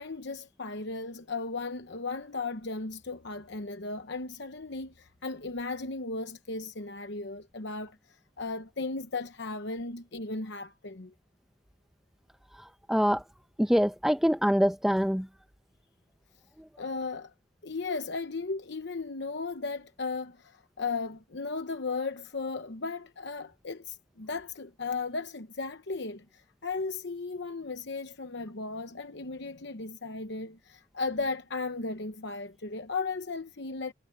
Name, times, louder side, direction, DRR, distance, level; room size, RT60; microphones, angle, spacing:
voice 1, 0.0-8.0 8.4-11.1 16.8-17.3 17.6-26.2 26.6-33.9, left 3 dB, 55° left, 0.9 m, -36 dB
voice 2, 12.9-13.2 13.6-15.3, equal, ahead, 0.8 m, -24 dB
head